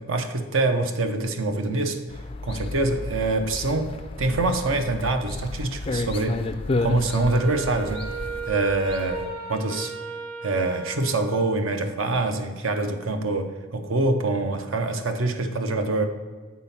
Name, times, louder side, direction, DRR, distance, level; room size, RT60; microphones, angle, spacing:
voice 1, 0.0-2.0 2.4-6.4 6.8-8.1 8.5-9.9 10.4-16.1, right 2 dB, 70° right, 7 dB, 0.7 m, -25 dB
sound 1, 2.1-9.3, left 2 dB, 25° left, 0.3 m, -32 dB
Wind instrument woodwind instrument, 7.0-11.7, right 4 dB, 90° right, 2.2 m, -35 dB
7.4 x 4.1 x 5.6 m, 1.4 s
head